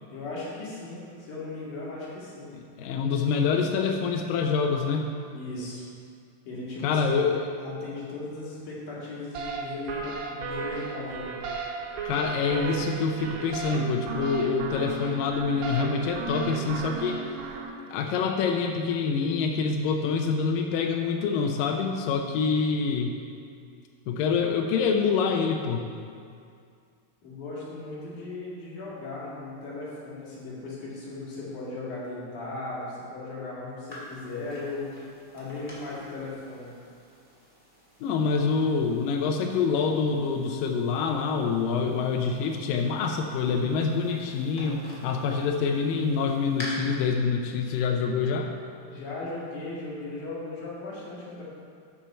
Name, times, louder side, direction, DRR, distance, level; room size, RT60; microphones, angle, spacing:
voice 1, 0.1-2.5 5.3-5.9 6.5-7.1 7.6-11.3 27.2-34.9 35.3-36.7 48.8-51.4, left 2 dB, 60° left, -6 dB, 3.5 m, -37 dB
voice 2, 2.5-5.1 6.8-7.5 12.1-17.2 17.9-23.1 24.1-25.9 38.0-48.5, left 5 dB, 80° left, 3 dB, 2.3 m, -26 dB
sound 1, 9.3-17.7, right 5 dB, 85° right, 2.6 m, -34 dB
sound 2, 33.9-46.6, left 1 dB, 10° left, 1.9 m, -49 dB
12.5 x 6.3 x 4.3 m, 2.3 s
omnidirectional pair, 4.1 m